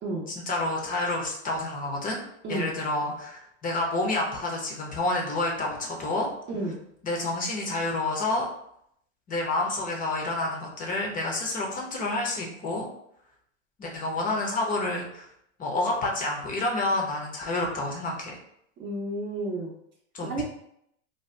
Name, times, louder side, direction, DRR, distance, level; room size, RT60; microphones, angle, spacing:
voice 1, 0.4-6.3 7.0-8.5 9.3-12.9 13.8-15.3 15.6-18.4 20.1-20.4, left 2 dB, 25° left, 0 dB, 0.7 m, -29 dB
voice 2, 18.8-19.7 20.2-20.4, right 2 dB, 30° right, -2 dB, 0.7 m, -31 dB
2.7 x 2.1 x 3.2 m, 0.72 s
hypercardioid pair, 115°, 36 cm